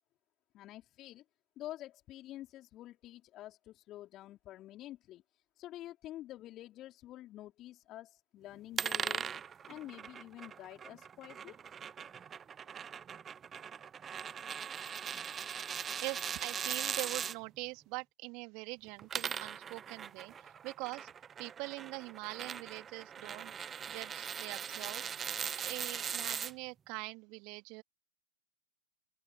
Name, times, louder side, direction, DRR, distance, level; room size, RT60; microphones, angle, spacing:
voice 1, 0.5-1.2 1.6-9.3 9.7-11.6, left 14 dB, 25° left, 3.6 m, -48 dB
sound 1, 8.8-17.4 18.9-26.5, right 7 dB, 15° right, 0.5 m, -40 dB
voice 2, 16.0-21.1 21.4-23.5 23.9-25.0 25.6-27.8, right 28 dB, 35° right, 2.4 m, -43 dB
open air
figure-of-eight pair, 110°, 0 cm